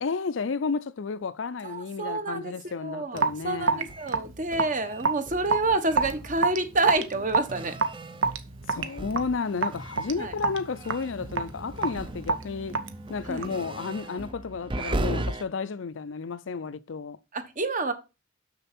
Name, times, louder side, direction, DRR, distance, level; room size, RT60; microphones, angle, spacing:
voice 1, 0.0-3.9 8.7-12.8 13.1-17.2, left 5 dB, 70° left, 0.5 m, -32 dB
voice 2, 1.6-7.7 10.2-10.3 13.3-13.5 17.3-17.9, right 2 dB, 45° right, 1.3 m, -28 dB
Raindrop / Drip, 3.2-13.7, right 4 dB, 80° right, 1.0 m, -29 dB
sound 1, 3.9-9.4 9.7-15.4, right 1 dB, 25° right, 0.6 m, -37 dB
6.8 x 6.8 x 4.3 m
head